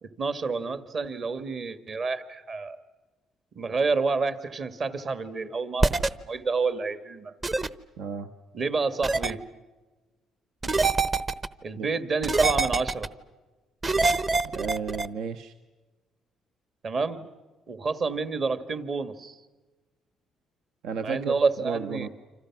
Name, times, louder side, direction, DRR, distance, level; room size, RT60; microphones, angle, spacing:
voice 1, 0.0-2.8 3.6-5.9 6.3-7.3 8.5-9.4 11.6-13.1 16.8-17.3 17.7-19.4 21.0-22.1, right 4 dB, 40° right, 11 dB, 2.0 m, -29 dB
sound 1, 5.8-6.1 7.4-7.7 9.0-9.3 10.6-11.5 12.2-13.1 13.8-15.1, right 3 dB, 25° right, 1.0 m, -24 dB
voice 2, 8.0-8.3 11.8-11.9 14.5-15.5 20.8-21.3 21.6-22.1, right 6 dB, 80° right, 9 dB, 1.2 m, -32 dB
29.0 x 26.5 x 6.1 m, 1.2 s
cardioid pair, 125°, 0 cm